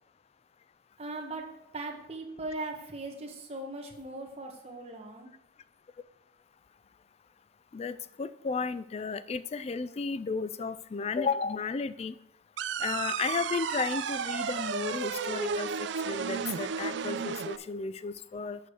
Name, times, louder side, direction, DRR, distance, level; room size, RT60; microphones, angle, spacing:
voice 1, 1.0-1.5 1.7-5.3, right 2 dB, 30° right, 1 dB, 1.3 m, -39 dB
voice 2, 7.7-12.1 12.8-18.6, left 5 dB, 30° left, 15 dB, 0.3 m, -33 dB
sound 1, 12.6-17.6, right 6 dB, 65° right, 0.4 m, -33 dB
7.5 x 5.1 x 6.3 m, 0.84 s
head